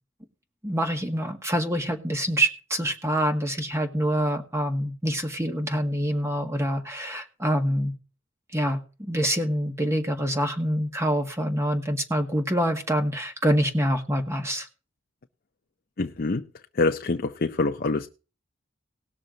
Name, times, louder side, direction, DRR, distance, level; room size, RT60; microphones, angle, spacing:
voice 1, 0.6-7.9 8.5-8.8 9.1-14.7, equal, 15° right, 1.7 m, -26 dB
voice 2, 16.0-16.4 16.8-18.1, left 3 dB, 50° left, 0.6 m, -25 dB
19.0 x 6.7 x 3.9 m
head